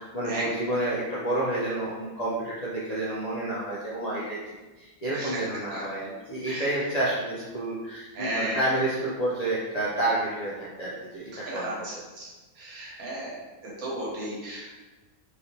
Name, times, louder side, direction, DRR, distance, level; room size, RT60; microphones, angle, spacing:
voice 1, 0.0-4.4 4.8-12.0, right 1 dB, 55° left, -8 dB, 0.4 m, -29 dB
voice 2, 8.2-8.6 11.5-11.7 12.6-13.3 13.6-14.7, right 1 dB, 75° right, -5 dB, 1.4 m, -33 dB
3.1 x 2.8 x 2.7 m, 1.2 s
omnidirectional pair, 1.5 m